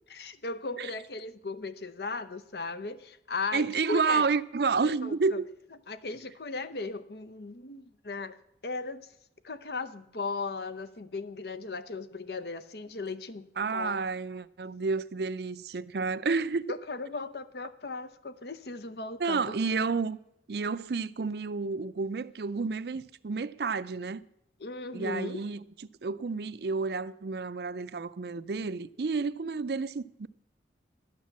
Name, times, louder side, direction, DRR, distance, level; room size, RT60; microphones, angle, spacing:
voice 1, 0.1-4.3 4.8-5.4 5.9-8.4 8.6-9.1 9.4-13.5 13.7-14.0 16.7-19.6 24.6-25.5, left 3 dB, 65° left, 0.8 m, -37 dB
voice 2, 3.5-5.5 13.6-16.7 19.2-20.2 20.5-24.2 24.9-25.6 26.0-30.3, right 4 dB, 65° right, 0.5 m, -30 dB
12.0 x 9.5 x 7.3 m
head